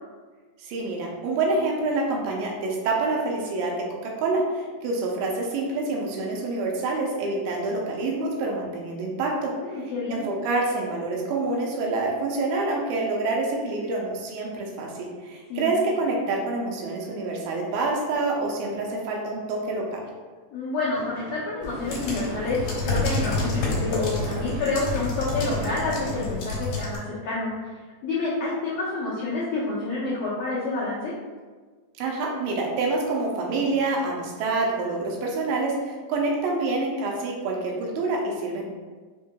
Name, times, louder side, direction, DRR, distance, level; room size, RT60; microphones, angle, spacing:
voice 1, 0.6-3.8 4.0-9.5 10.1-20.0 32.0-38.6, right 3 dB, 80° right, -1 dB, 2.4 m, -27 dB
voice 2, 9.5-10.2 15.5-15.7 20.5-22.6 22.8-27.5 28.0-31.1, left 3 dB, 85° left, -9 dB, 1.5 m, -28 dB
Gunshot gunfire / Fireworks, 20.9-27.2, right 2 dB, 60° right, 2.1 m, -37 dB
sound 1, 21.6-27.0, left 3 dB, 65° left, 1.9 m, -29 dB
6.2 x 3.6 x 2.2 m, 1.4 s
omnidirectional pair, 4.4 m